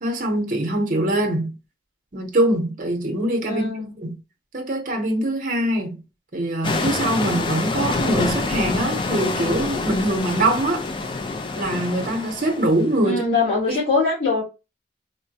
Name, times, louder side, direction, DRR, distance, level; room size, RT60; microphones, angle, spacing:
voice 1, 0.0-1.5 2.1-3.7 4.0-4.1 4.5-6.0 6.3-10.9 11.5-13.2 13.7-13.8, right 1 dB, 45° right, 0.7 m, -23 dB
voice 2, 3.4-3.9 13.0-14.4, left 3 dB, 55° left, 1.7 m, -22 dB
sound 1, 6.6-13.0, left 3 dB, 25° left, 0.3 m, -26 dB
3.7 x 2.1 x 2.7 m
head